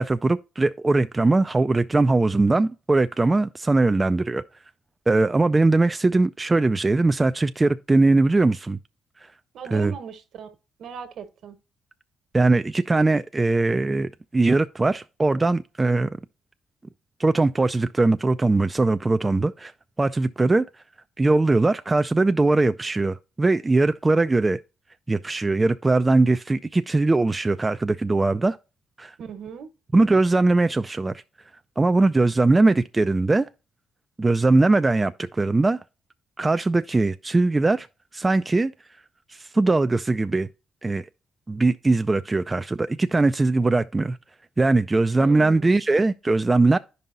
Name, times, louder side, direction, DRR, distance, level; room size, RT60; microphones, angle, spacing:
voice 1, 0.0-4.4 5.1-8.8 9.7-9.9 12.3-16.1 17.2-19.7 20.0-20.6 21.2-24.6 25.1-28.6 29.0-29.1 29.9-31.2 31.8-33.5 34.2-35.8 36.4-37.9 38.1-38.7 39.3-40.5 40.8-41.0 41.5-44.2 44.6-46.8, right 2 dB, 20° right, 0.3 m, -20 dB
voice 2, 9.5-10.5 10.8-11.6 29.2-29.7 45.2-45.7, right 6 dB, 70° right, 1.4 m, -38 dB
10.0 x 5.4 x 2.6 m
cardioid pair, 90°, 0 cm